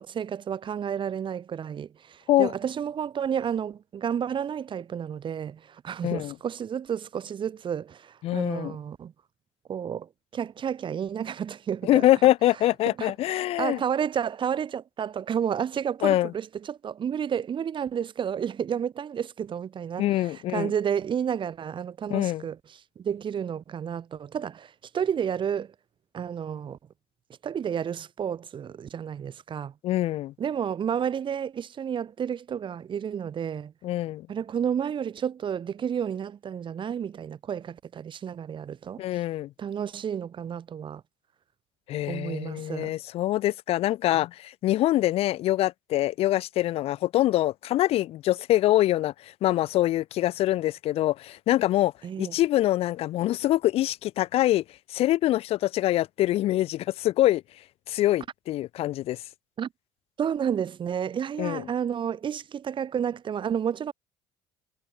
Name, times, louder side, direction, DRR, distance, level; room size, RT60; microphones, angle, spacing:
voice 1, 0.0-9.1 9.7-12.1 12.9-22.6 23.0-25.7 26.1-26.8 27.4-29.7 30.4-33.7 34.3-39.0 39.6-41.0 42.1-42.9 52.0-52.3 59.6-59.7 60.2-63.9, right 8 dB, 50° right, 6.3 m, -31 dB
voice 2, 6.0-6.3 8.2-8.7 11.8-13.8 16.0-16.3 20.0-20.7 22.1-22.4 29.8-30.3 33.8-34.3 39.0-39.5 41.9-51.9 52.2-54.6 54.9-57.4 57.9-59.2 61.4-61.6, left 14 dB, 65° left, 1.2 m, -24 dB
hypercardioid pair, 65°, 11 cm